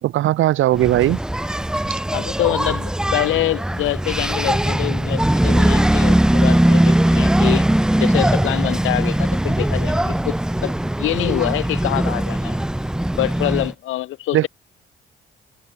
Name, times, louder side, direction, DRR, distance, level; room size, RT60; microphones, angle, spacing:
voice 1, 0.0-1.2 14.3-14.5, right 14 dB, 80° right, 2.3 m, -17 dB
Engine, 0.7-13.7, right 1 dB, 5° right, 0.5 m, -19 dB
voice 2, 2.1-7.6 8.0-10.4 10.6-12.6 13.1-14.5, left 15 dB, 85° left, 1.5 m, -25 dB
cardioid pair, 90°, 20 cm